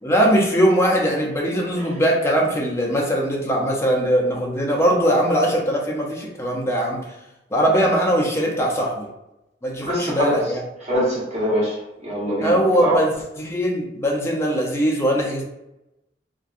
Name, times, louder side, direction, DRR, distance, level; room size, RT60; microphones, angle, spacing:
voice 1, 0.0-7.0 7.5-9.1 9.6-10.6 12.4-15.4, equal, 15° left, -2 dB, 0.5 m, -20 dB
voice 2, 9.9-10.4 10.8-13.0, right 1 dB, 40° right, -6 dB, 1.0 m, -24 dB
2.6 x 2.2 x 2.4 m, 0.89 s
head